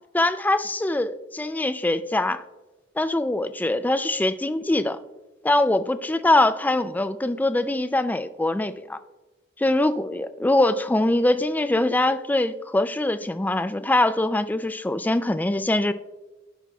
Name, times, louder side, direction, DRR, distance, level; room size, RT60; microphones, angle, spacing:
voice 1, 0.1-2.4 3.0-5.0 5.4-9.0 9.6-15.9, left 1 dB, 10° left, 11 dB, 0.3 m, -23 dB
16.5 x 5.8 x 2.3 m, 1.1 s
head